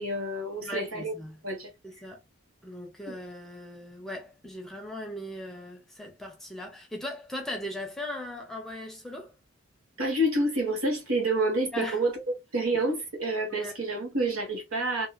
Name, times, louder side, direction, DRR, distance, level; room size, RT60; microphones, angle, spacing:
voice 1, 0.0-1.1 1.4-1.7 3.1-3.2 10.0-12.2 12.5-15.1, right 1 dB, 85° right, 1.4 m, -28 dB
voice 2, 0.6-1.4 1.8-2.2 2.6-9.3 11.7-12.0 13.6-13.7, left 1 dB, ahead, 0.6 m, -38 dB
2.8 x 2.6 x 2.4 m
head